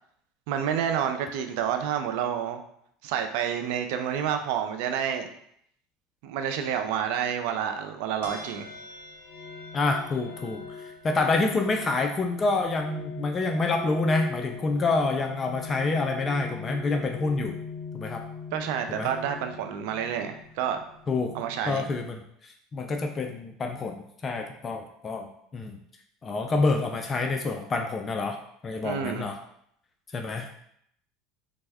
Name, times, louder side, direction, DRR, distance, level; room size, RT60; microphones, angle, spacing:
voice 1, 0.5-2.6 3.0-5.3 6.2-8.7 18.5-20.8 21.3-21.8 28.8-29.3, right 8 dB, 75° right, 7 dB, 0.4 m, -29 dB
sound 1, 8.2-21.7, left 5 dB, 90° left, 0.6 m, -41 dB
voice 2, 9.7-17.5 17.9-18.2 18.9-19.1 21.1-21.3 21.7-25.8 26.2-28.4 28.6-29.4 30.1-30.5, left 3 dB, 30° left, 3 dB, 0.3 m, -27 dB
3.4 x 2.0 x 3.4 m, 0.70 s
supercardioid pair, 100°, 0 cm